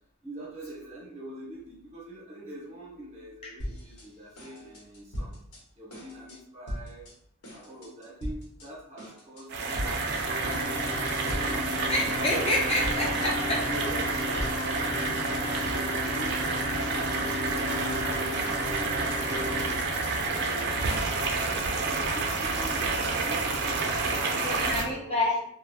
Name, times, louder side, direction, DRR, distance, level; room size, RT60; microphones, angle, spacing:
voice 1, 0.2-5.4 5.8-7.1 7.5-10.9 11.3-11.8 12.2-12.7 13.6-19.8 20.2-20.9 21.8-25.4, right 1 dB, 30° right, -5 dB, 0.9 m, -44 dB
sound 1, 3.6-4.1 4.4-5.6 5.9-6.4 6.7-7.1 7.4-8.7 9.0-9.4 9.7-10.2 10.5-11.8 12.0-12.5 12.8-15.8, equal, 90° left, 0.9 m, -39 dB
sound 2, 9.5-24.8, right 3 dB, 50° right, 0.4 m, -29 dB
sound 3, 10.2-19.7, left 2 dB, 5° right, 1.3 m, -36 dB
voice 2, 11.9-13.7 24.2-25.4, left 2 dB, 25° left, -2 dB, 0.4 m, -28 dB
2.8 x 2.1 x 2.2 m, 0.69 s
head